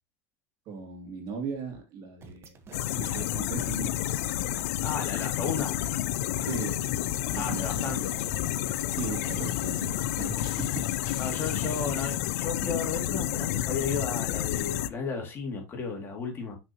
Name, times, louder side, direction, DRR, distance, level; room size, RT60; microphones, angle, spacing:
voice 1, 0.7-2.6 3.0-3.9 6.4-8.0 8.9-10.8, right 5 dB, 50° right, 2.8 m, -38 dB
sound 1, 2.2-9.5, right 4 dB, 30° right, 1.2 m, -47 dB
sound 2, 2.7-14.9, left 13 dB, 80° left, 0.5 m, -30 dB
voice 2, 4.8-5.8 7.4-8.1 11.2-16.6, left 4 dB, 30° left, 2.4 m, -34 dB
sound 3, 6.5-12.4, left 7 dB, 55° left, 3.1 m, -51 dB
6.3 x 6.2 x 2.9 m
supercardioid pair, 130°, 8 cm